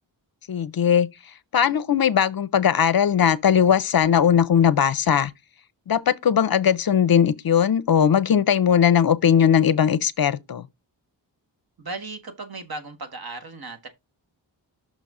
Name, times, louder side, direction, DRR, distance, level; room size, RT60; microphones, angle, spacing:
voice 1, 0.5-1.1 1.5-5.3 5.9-10.6, left 8 dB, 55° left, 0.5 m, -19 dB
voice 2, 11.8-13.9, right 3 dB, 55° right, 1.5 m, -36 dB
6.3 x 3.9 x 4.8 m
wide cardioid pair, 130°, 44 cm